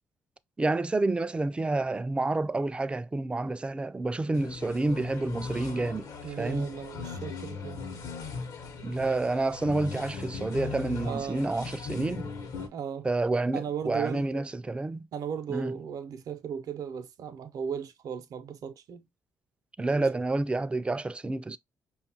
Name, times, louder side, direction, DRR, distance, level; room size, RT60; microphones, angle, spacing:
voice 1, 0.6-6.1 6.4-6.7 8.8-12.3 13.0-15.1 15.5-15.7 19.8-21.6, right 2 dB, 15° right, 0.3 m, -29 dB
sound 1, 4.3-12.7, left 5 dB, 65° left, 0.8 m, -39 dB
voice 2, 6.2-7.8 11.0-11.5 12.6-13.1 13.5-14.5 15.1-19.1 20.0-20.1, right 7 dB, 65° right, 0.6 m, -36 dB
5.2 x 2.4 x 2.7 m
supercardioid pair, 60°, 7 cm